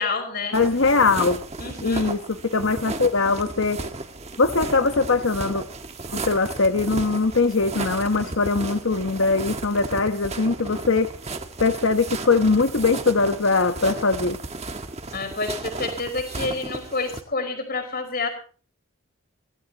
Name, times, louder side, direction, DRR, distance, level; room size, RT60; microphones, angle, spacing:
voice 1, 0.0-0.9 1.6-2.1 15.1-18.3, left 3 dB, 45° left, 4 dB, 5.3 m, -29 dB
voice 2, 0.5-1.4 1.8-3.8 4.4-5.6 6.1-11.1 11.6-14.4, left 3 dB, 70° left, 9 dB, 1.1 m, -21 dB
sound 1, 0.5-17.2, right 2 dB, 30° right, 1.6 m, -34 dB
23.5 x 18.0 x 3.0 m, 0.41 s
head